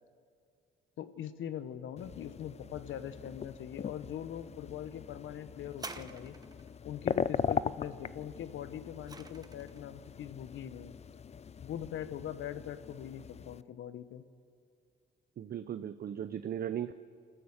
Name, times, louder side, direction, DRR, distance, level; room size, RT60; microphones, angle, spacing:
voice 1, 1.0-6.3 6.8-10.9 11.6-14.2, left 10 dB, 75° left, 12 dB, 1.1 m, -42 dB
sound 1, 2.0-13.6, left 6 dB, 35° left, 0.5 m, -40 dB
sound 2, 5.7-6.8 8.5-9.9 10.7-10.8, right 3 dB, 20° right, 1.0 m, -47 dB
voice 2, 15.4-16.9, right 9 dB, 50° right, 11 dB, 0.6 m, -37 dB
27.0 x 15.0 x 6.5 m, 2.5 s
cardioid pair, 90°, 20 cm